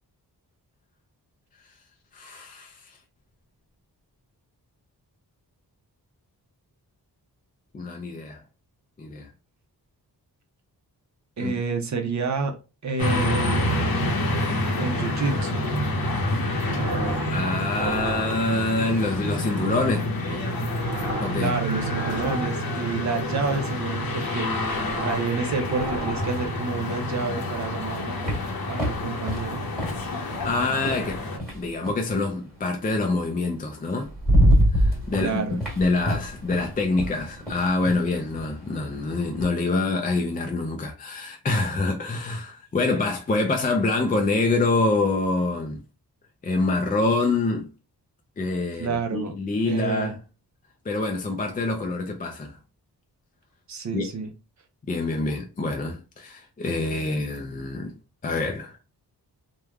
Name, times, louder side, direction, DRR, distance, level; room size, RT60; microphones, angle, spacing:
voice 1, 2.1-3.0 7.7-8.4 9.0-9.3 11.4-11.5 17.3-20.4 21.2-21.5 30.1-31.2 31.5-34.1 34.7-45.8 46.4-47.7 48.4-50.2 50.9-52.5 53.9-54.0 54.9-57.9 58.2-58.8, left 3 dB, 25° left, 0.3 m, -26 dB
voice 2, 11.4-12.6 12.8-13.7 14.8-15.7 21.4-24.5 25.0-28.2 28.7-29.6 35.2-35.6 48.7-49.3 49.7-50.1 53.7-54.3, right 4 dB, 45° right, 0.6 m, -29 dB
sound 1, 13.0-31.4, left 1 dB, 60° left, 0.8 m, -28 dB
sound 2, 16.6-17.3 17.6-18.7 19.3-19.9 20.4-22.8 23.3-23.9 24.3-25.3 25.6-26.8 27.3-27.9, right 3 dB, 70° right, 0.9 m, -36 dB
sound 3, 27.7-32.1 33.4-33.5 33.9-39.5, equal, ahead, 1.4 m, -26 dB
3.2 x 2.2 x 2.2 m
wide cardioid pair, 135°, 39 cm